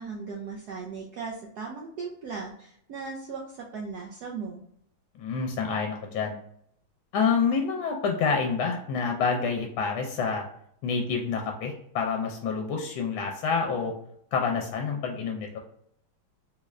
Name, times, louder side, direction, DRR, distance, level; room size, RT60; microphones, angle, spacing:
voice 1, 0.0-4.6, right 5 dB, 75° right, -1 dB, 0.9 m, -37 dB
voice 2, 5.2-6.3 7.1-10.4 10.8-13.9 14.3-15.6, left 5 dB, 80° left, 3 dB, 1.4 m, -28 dB
3.8 x 3.1 x 2.4 m, 0.69 s
omnidirectional pair, 2.2 m